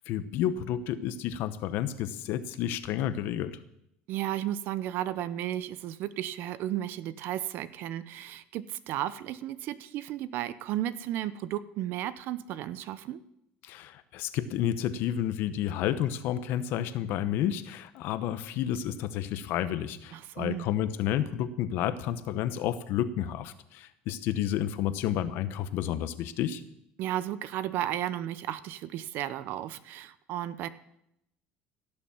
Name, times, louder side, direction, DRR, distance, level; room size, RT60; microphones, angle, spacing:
voice 1, 0.0-3.6 13.6-26.6, left 11 dB, 70° left, 13 dB, 1.0 m, -31 dB
voice 2, 4.1-13.2 20.1-20.7 27.0-30.7, right 12 dB, 65° right, 15 dB, 0.8 m, -34 dB
16.5 x 7.0 x 7.2 m, 0.80 s
supercardioid pair, 105°, 4 cm